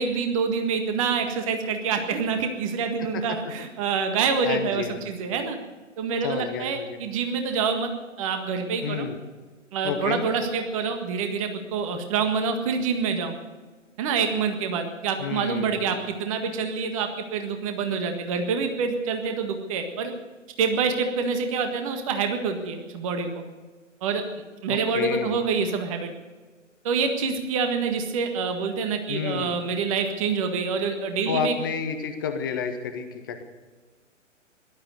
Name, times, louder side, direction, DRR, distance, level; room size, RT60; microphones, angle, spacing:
voice 1, 0.0-5.6 6.0-7.9 8.2-9.1 9.7-13.3 14.0-20.1 20.6-23.4 24.0-24.2 24.6-26.1 26.8-31.5, right 5 dB, 25° right, 6 dB, 1.7 m, -26 dB
voice 2, 4.4-5.2 6.2-7.0 8.8-9.2 9.8-10.2 15.2-16.0 24.7-25.4 29.1-29.6 31.3-33.4, left 7 dB, 15° left, 7 dB, 0.7 m, -30 dB
17.5 x 12.0 x 6.7 m, 1.3 s
figure-of-eight pair, 130°, 38 cm